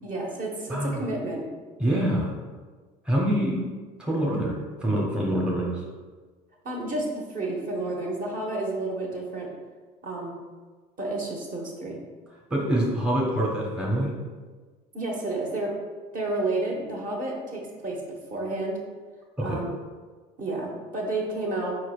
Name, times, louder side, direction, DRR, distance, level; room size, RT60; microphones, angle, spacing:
voice 1, 0.0-1.5 6.6-9.5 10.0-10.3 11.0-12.0 14.9-15.7 16.1-18.8 19.4-19.7 20.4-21.7, right 2 dB, 40° right, -2 dB, 1.2 m, -30 dB
voice 2, 0.7-1.0 1.8-2.3 3.1-3.6 4.0-5.8 12.5-14.1 19.4-19.6, right 1 dB, 5° right, -3 dB, 0.9 m, -25 dB
4.6 x 4.4 x 2.4 m, 1.4 s
hypercardioid pair, 70°, 21 cm